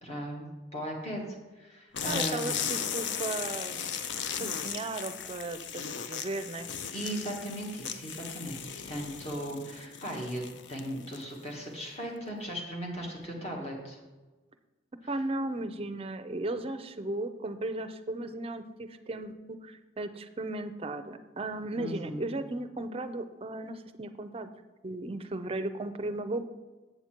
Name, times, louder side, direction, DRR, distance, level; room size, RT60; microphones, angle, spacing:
voice 1, 0.0-1.2 1.6-2.6 6.9-10.4 10.7-14.0 21.8-22.2, equal, 35° left, -1 dB, 1.8 m, -37 dB
sound 1, 1.9-11.4, left 7 dB, 75° left, 0.5 m, -37 dB
voice 2, 2.1-3.9 4.4-6.7 15.1-24.5 24.8-26.5, right 2 dB, 30° right, 10 dB, 0.5 m, -36 dB
8.0 x 7.0 x 4.4 m, 1.2 s
head